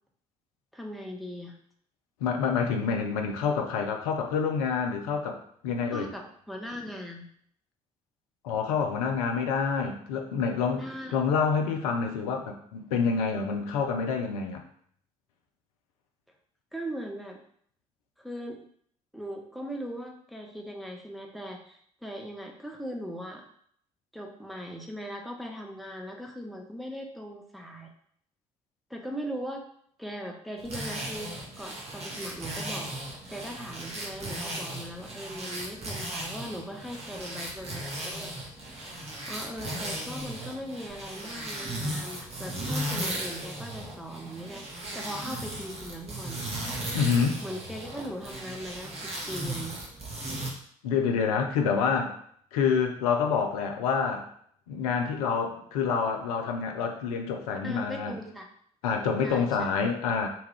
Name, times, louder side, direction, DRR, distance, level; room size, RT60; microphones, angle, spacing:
voice 1, 0.7-1.5 5.9-7.3 10.8-11.2 16.7-17.4 18.2-18.6 19.1-23.4 24.1-27.9 28.9-29.6 30.0-32.9 33.3-38.3 38.7-46.4 47.4-49.8 57.6-58.5 59.2-59.7, equal, ahead, 1 dB, 0.6 m, -39 dB
voice 2, 2.2-5.4 5.6-6.1 8.4-14.6 46.9-47.4 50.8-52.1 52.5-54.3 54.7-58.1 58.8-60.3, left 6 dB, 70° left, 4 dB, 0.5 m, -27 dB
sound 1, 30.6-50.5, right 1 dB, 35° right, 0.9 m, -36 dB
2.6 x 2.3 x 3.3 m, 0.63 s
figure-of-eight pair, 45°, 19 cm